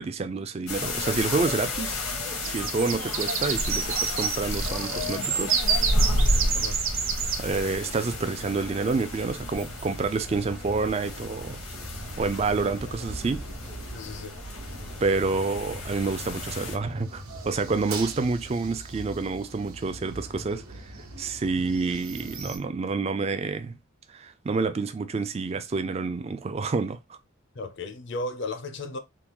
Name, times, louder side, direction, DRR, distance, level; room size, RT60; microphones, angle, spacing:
voice 1, 0.0-2.0 2.4-5.6 7.4-11.6 12.2-13.4 15.0-23.8 24.1-27.2, right 4 dB, 30° right, 0.3 m, -28 dB
sound 1, 0.7-16.8, left 1 dB, 90° left, 1.2 m, -31 dB
sound 2, 2.4-7.4, right 7 dB, 65° right, 0.6 m, -28 dB
sound 3, 5.8-22.6, right 1 dB, 85° right, 1.1 m, -42 dB
voice 2, 13.9-14.4 27.5-29.0, left 2 dB, 55° left, 0.5 m, -35 dB
3.6 x 2.3 x 2.9 m
head